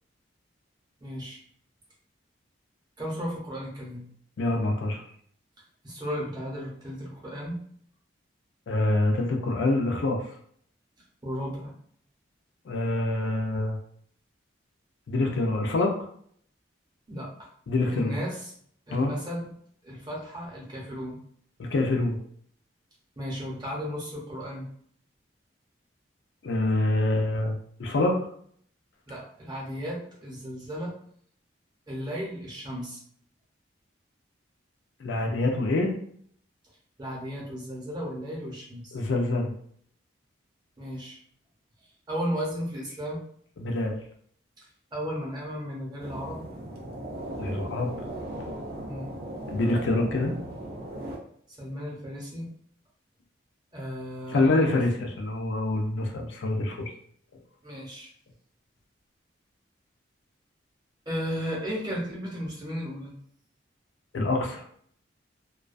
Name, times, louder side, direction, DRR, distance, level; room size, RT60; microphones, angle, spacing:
voice 1, 1.0-1.4 3.0-4.0 5.8-7.6 11.2-11.7 17.1-17.5 17.9-18.5 18.9-19.5 19.8-21.2 23.2-24.7 29.1-30.9 31.9-33.0 37.0-39.0 40.8-41.2 42.1-43.2 44.9-46.4 48.9-49.1 51.5-52.5 53.7-54.4 57.6-58.1 61.1-63.1, equal, 20° right, -4 dB, 0.7 m, -34 dB
voice 2, 4.4-5.0 8.7-10.3 12.7-13.8 15.1-15.9 17.7-18.2 18.9-19.1 21.6-22.2 26.4-28.2 35.0-35.9 38.9-39.5 43.6-44.0 47.4-47.9 49.5-50.3 54.3-56.9 64.1-64.6, left 2 dB, 70° left, 2 dB, 0.4 m, -26 dB
sound 1, 46.0-51.2, right 1 dB, 50° right, 0.5 m, -37 dB
2.3 x 2.2 x 2.4 m, 0.62 s
head